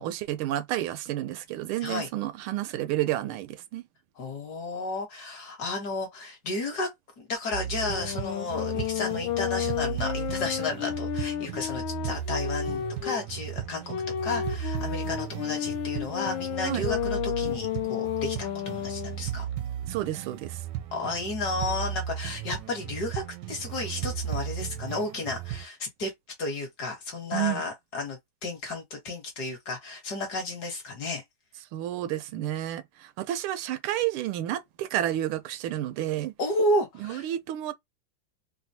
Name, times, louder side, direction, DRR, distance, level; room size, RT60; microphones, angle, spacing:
voice 1, 0.0-3.8 16.6-16.8 19.9-20.6 27.3-27.6 31.7-36.3 37.0-37.7, right 13 dB, 90° right, 1.5 m, -30 dB
voice 2, 4.2-6.9 7.2-13.9 14.2-19.5 20.9-23.2 23.5-26.1 26.4-31.2 36.4-37.3, left 2 dB, 55° left, 1.7 m, -32 dB
sound 1, 7.5-25.6, right 10 dB, 75° right, 1.0 m, -36 dB
sound 2, 7.8-13.3 13.9-19.2, left 11 dB, 80° left, 1.3 m, -32 dB
4.0 x 2.2 x 2.7 m
omnidirectional pair, 2.3 m